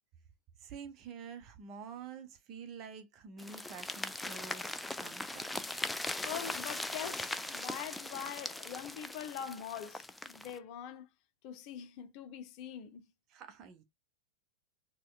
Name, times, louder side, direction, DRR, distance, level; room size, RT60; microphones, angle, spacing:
voice 1, 0.6-5.6 13.3-13.8, right 6 dB, 35° right, 0.7 m, -48 dB
sound 1, 3.4-10.6, left 2 dB, 5° left, 0.3 m, -40 dB
voice 2, 6.2-11.1 11.4-13.0, left 9 dB, 45° left, 0.6 m, -43 dB
4.3 x 2.2 x 2.3 m
figure-of-eight pair, 90°, 0 cm